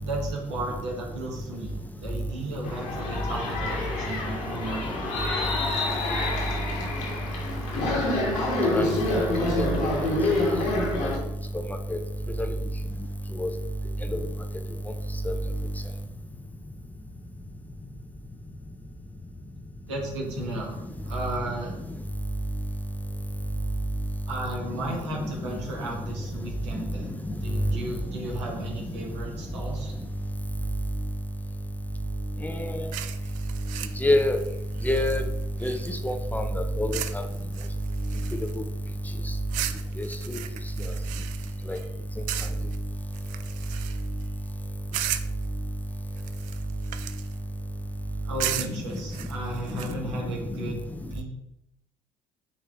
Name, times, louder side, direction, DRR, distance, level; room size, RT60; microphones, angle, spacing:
voice 1, 0.0-5.1 19.9-20.8 21.1-21.8 24.3-27.1 27.4-29.9 48.2-50.8 51.1-51.2, right 1 dB, 80° right, -1 dB, 1.6 m, -34 dB
sound 1, 2.6-11.2, left 2 dB, 60° left, 1.9 m, -27 dB
voice 2, 8.7-9.7 10.0-10.1 11.0-11.1 11.9-12.0 12.4-12.5 13.3-13.5 14.1-14.2 15.2-15.3 25.2-25.5 26.7-26.8 27.3-27.4 27.7-27.9 32.4-32.9 34.0-34.4 34.8-35.2 35.6-37.2 40.0-40.4 41.7-41.8 49.8-49.9 50.6-50.7, left 1 dB, 10° left, 6 dB, 0.8 m, -27 dB
sound 2, 32.9-36.1 36.9-37.2 37.5-38.7 39.5-41.8 42.3-42.8 43.1-44.2 44.9-45.4 46.2-47.4 48.4-49.9, right 12 dB, 60° right, 0.5 m, -35 dB
8.3 x 3.2 x 3.8 m, 0.87 s
hypercardioid pair, 65°, 15 cm